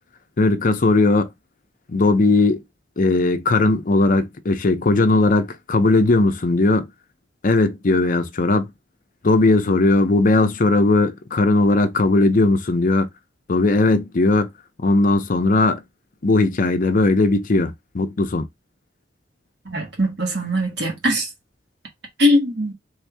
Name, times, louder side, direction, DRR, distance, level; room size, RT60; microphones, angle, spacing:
voice 1, 0.4-1.3 1.9-2.6 3.0-6.9 7.4-8.7 9.2-13.1 13.5-14.5 14.8-15.8 16.2-18.5, left 2 dB, 45° left, 0.6 m, -18 dB
voice 2, 19.6-21.2 22.2-22.7, left 1 dB, 65° right, 1.6 m, -20 dB
3.5 x 2.7 x 3.3 m
head